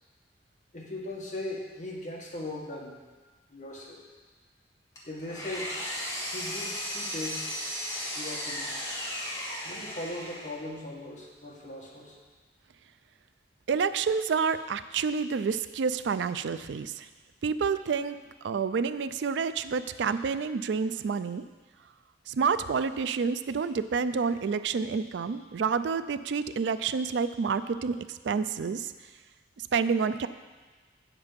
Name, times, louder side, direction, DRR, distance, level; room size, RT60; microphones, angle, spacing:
voice 1, 0.7-2.9 3.5-4.0 5.0-5.7 6.3-7.5 8.2-8.8 9.6-12.2, left 1 dB, 40° left, -3 dB, 1.7 m, -39 dB
Engine, 5.0-10.7, left 1 dB, 20° left, 1.8 m, -35 dB
voice 2, 13.7-17.1 17.4-18.2 18.4-21.4 22.3-28.9 29.6-30.3, right 5 dB, 75° right, 12 dB, 0.4 m, -29 dB
8.9 x 7.4 x 5.2 m, 1.3 s
head